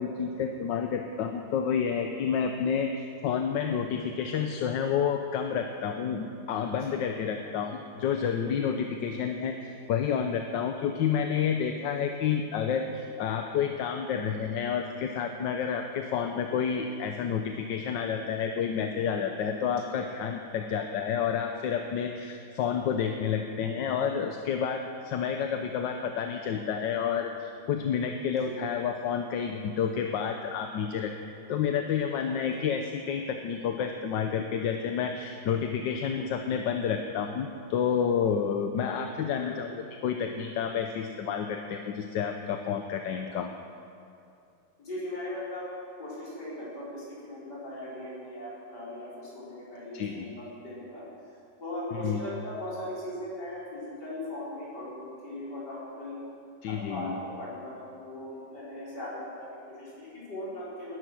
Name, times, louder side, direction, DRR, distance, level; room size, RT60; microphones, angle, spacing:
voice 1, 0.0-31.1 31.5-39.7 40.0-43.5 49.9-50.3 52.0-52.2 56.6-57.2, left 7 dB, 90° left, 5 dB, 1.5 m, -30 dB
voice 2, 6.6-7.0 28.4-28.6 32.3-32.7 39.3-39.7 44.8-45.7 46.0-51.1 51.6-56.2 56.7-61.0, left 1 dB, 70° left, -8 dB, 5.8 m, -39 dB
19.0 x 11.0 x 6.2 m, 2.6 s
omnidirectional pair, 1.9 m